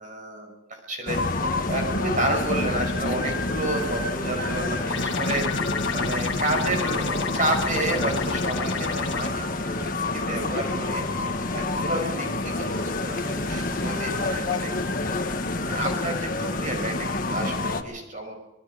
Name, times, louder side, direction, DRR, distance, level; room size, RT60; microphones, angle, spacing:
voice 1, 0.0-9.9 10.1-18.4, right 1 dB, 40° right, 3 dB, 6.1 m, -31 dB
sound 1, 1.1-17.8, left 2 dB, 45° left, 1.7 m, -28 dB
sound 2, 4.9-9.3, left 4 dB, 70° left, 1.7 m, -30 dB
27.0 x 20.5 x 5.1 m, 1.0 s
head